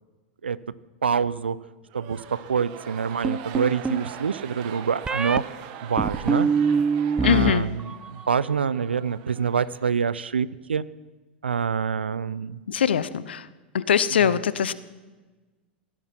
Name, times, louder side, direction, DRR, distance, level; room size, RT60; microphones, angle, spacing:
voice 1, 1.0-1.6 1.9-5.4 5.8-6.5 7.2-7.7 8.1-10.8 11.4-12.6 14.2-14.3, right 6 dB, 85° right, 19 dB, 0.6 m, -26 dB
sound 1, 1.9-10.3, right 9 dB, 55° right, 1.7 m, -42 dB
sound 2, 3.2-4.1 5.1-5.4 6.0-7.5 7.8-8.4, right 5 dB, 15° right, 0.5 m, -24 dB
voice 2, 7.2-7.7 12.7-13.5 13.7-14.7, left 8 dB, 75° left, 17 dB, 0.8 m, -22 dB
18.0 x 15.0 x 4.5 m, 1.2 s
hypercardioid pair, 95°, 6 cm